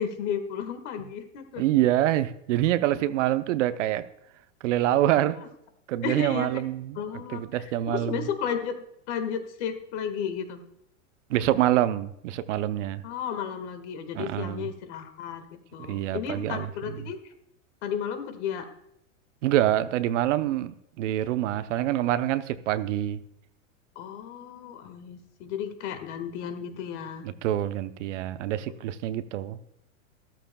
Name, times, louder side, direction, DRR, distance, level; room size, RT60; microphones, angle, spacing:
voice 1, 0.0-1.6 6.0-6.6 7.0-7.4 7.9-10.6 13.0-15.5 15.7-17.3 17.8-18.7 24.0-27.3, left 7 dB, 55° left, 1.8 m, -33 dB
voice 2, 1.6-4.1 4.6-5.4 5.9-8.3 11.3-13.0 14.1-14.7 15.8-17.0 19.4-23.2 27.2-29.6, right 13 dB, 65° right, 0.8 m, -26 dB
13.5 x 13.5 x 2.3 m
hypercardioid pair, 130°, 40 cm